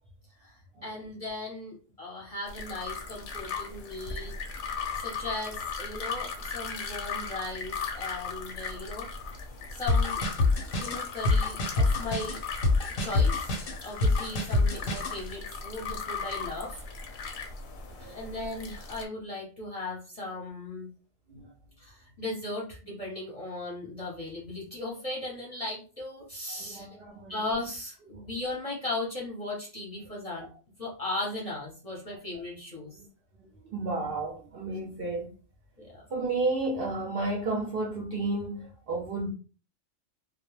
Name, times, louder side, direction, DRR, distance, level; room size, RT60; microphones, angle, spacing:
voice 1, 0.4-4.4 4.9-9.1 9.7-10.2 10.8-12.4 13.0-13.5 13.8-16.8 18.0-20.9 21.8-26.9 27.3-30.5 30.8-33.0 35.8-36.0, left 2 dB, 35° left, 0.6 m, -37 dB
sound 1, 2.5-19.0, left 5 dB, 65° left, 0.8 m, -37 dB
sound 2, 9.9-15.2, left 3 dB, 90° left, 1.1 m, -25 dB
voice 2, 17.9-18.2 21.3-21.5 26.5-27.4 28.1-28.2 33.7-35.3 36.1-39.3, right 2 dB, 60° right, 0.6 m, -32 dB
2.3 x 2.0 x 3.0 m
omnidirectional pair, 1.3 m